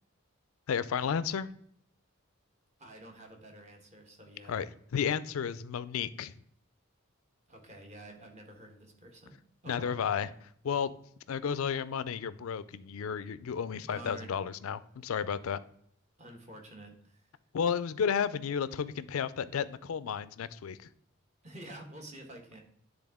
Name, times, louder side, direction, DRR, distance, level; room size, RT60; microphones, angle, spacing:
voice 1, 0.7-1.5 4.5-6.3 9.7-10.3 10.6-10.9 11.3-15.6 17.5-20.9, left 7 dB, 80° left, 15 dB, 0.4 m, -32 dB
voice 2, 2.8-4.6 7.5-9.4 9.6-10.0 13.7-14.4 16.2-17.3 21.4-22.6, right 1 dB, 35° right, 2 dB, 1.1 m, -49 dB
9.8 x 3.7 x 3.5 m, 0.66 s
head